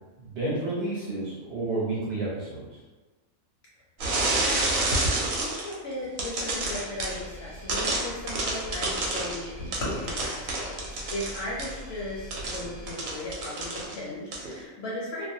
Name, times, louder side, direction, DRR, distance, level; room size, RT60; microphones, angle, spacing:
voice 1, 0.2-2.6, right 2 dB, 60° right, -6 dB, 0.8 m, -30 dB
sound 1, 4.0-5.7 6.2-7.2 7.7-11.8 12.3-14.0 14.3-14.5, right 2 dB, 90° right, 1.0 m, -28 dB
voice 2, 4.3-9.5 9.8-10.8 11.1-15.3, left 1 dB, 65° left, -6 dB, 0.7 m, -37 dB
sound 2, 6.6-12.9, equal, 15° right, 0.9 m, -45 dB
sound 3, 9.6-13.4, left 1 dB, 85° left, 1.0 m, -41 dB
2.4 x 2.0 x 2.6 m, 1.2 s
omnidirectional pair, 1.4 m